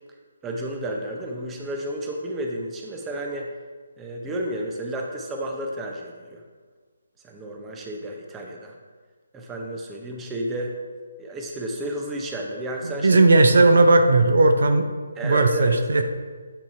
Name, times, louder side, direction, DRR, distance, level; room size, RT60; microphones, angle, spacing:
voice 1, 0.4-3.5 4.0-6.4 7.2-8.7 9.3-10.8 11.2-13.2 15.2-15.8, right 1 dB, 10° right, 1 dB, 0.7 m, -31 dB
voice 2, 12.8-14.9 15.2-16.0, right 2 dB, 65° right, 7 dB, 0.6 m, -16 dB
8.7 x 2.9 x 4.6 m, 1.5 s
figure-of-eight pair, 145°, 0 cm